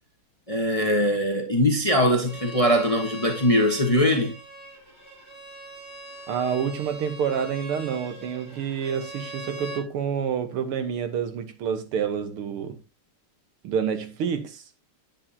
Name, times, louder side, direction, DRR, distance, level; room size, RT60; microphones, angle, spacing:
voice 1, 0.5-4.3, left 1 dB, 25° left, 0.8 m, -21 dB
Bowed string instrument, 2.2-9.9, right 2 dB, 20° right, 2.3 m, -41 dB
voice 2, 6.3-12.8 13.6-14.6, right 7 dB, 90° right, 2.1 m, -28 dB
8.8 x 8.7 x 2.8 m
omnidirectional pair, 2.3 m